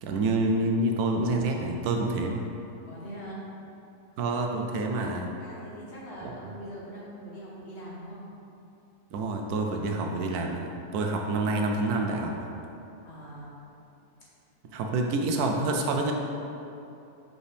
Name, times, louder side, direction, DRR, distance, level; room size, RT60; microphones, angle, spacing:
voice 1, 0.0-2.4 4.2-5.3 6.2-6.3 9.1-12.3 14.7-16.1, right 2 dB, 75° right, 2 dB, 1.1 m, -27 dB
voice 2, 2.8-3.4 5.4-8.3 13.0-13.6, right 1 dB, 45° left, -6 dB, 1.3 m, -42 dB
6.1 x 5.2 x 3.3 m, 2.8 s
omnidirectional pair, 1.7 m